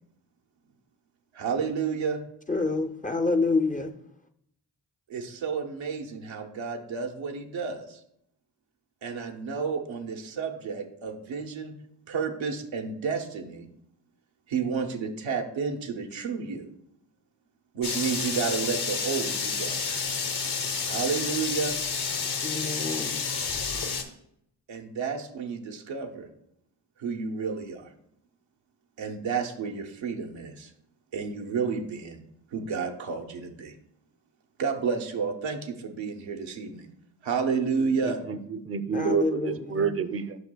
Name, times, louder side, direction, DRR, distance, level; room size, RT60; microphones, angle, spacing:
voice 1, 1.3-2.2 5.1-8.0 9.0-11.8 12.1-13.7 14.5-16.6 17.7-19.8 20.9-21.7 24.7-26.3 27.0-27.9 29.0-30.7 31.1-32.2 32.5-33.7 34.6-36.9 37.2-38.2, right 5 dB, 85° right, 0.8 m, -31 dB
voice 2, 2.5-3.9 22.4-23.3 38.9-39.9, left 3 dB, 20° left, 0.5 m, -27 dB
sound 1, 17.8-24.0, left 5 dB, 60° left, 1.0 m, -30 dB
voice 3, 38.3-40.4, right 6 dB, 30° right, 0.5 m, -28 dB
8.0 x 5.4 x 2.2 m
cardioid pair, 45°, 45 cm